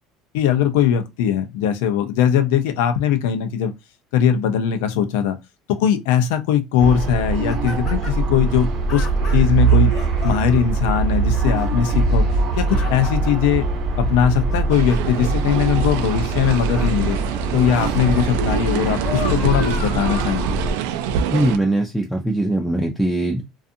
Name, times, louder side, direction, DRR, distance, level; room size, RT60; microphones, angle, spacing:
voice 1, 0.3-3.7 4.1-5.4 5.8-9.1 9.3-9.9 10.2-12.3 12.6-13.6 14.0-17.2 17.5-20.4, left 9 dB, 90° left, 0.5 m, -20 dB
sound 1, 6.8-20.7, right 3 dB, 40° right, 0.9 m, -22 dB
sound 2, 7.3-8.3 8.9-10.6 11.1-11.7 12.2-13.5 14.1-15.2 16.0-17.1 17.7-18.3 18.7-20.8 21.4-21.5, left 5 dB, 40° left, 0.8 m, -35 dB
sound 3, 14.7-21.6, right 8 dB, 85° right, 0.3 m, -26 dB
voice 2, 21.3-23.4, right 1 dB, ahead, 0.3 m, -21 dB
2.5 x 2.4 x 2.6 m
cardioid pair, 170°, 0 cm